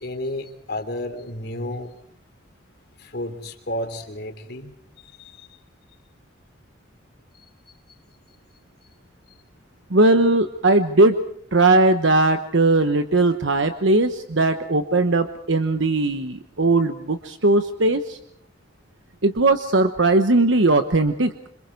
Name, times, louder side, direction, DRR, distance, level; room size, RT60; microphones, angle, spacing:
voice 1, 0.0-1.9 3.0-4.7 5.0-5.5 7.3-7.4, left 1 dB, 55° left, 5 dB, 3.3 m, -32 dB
voice 2, 9.9-11.2 11.5-18.2 19.2-21.5, right 2 dB, 70° right, 8 dB, 1.1 m, -19 dB
27.0 x 26.5 x 4.7 m, 0.66 s
head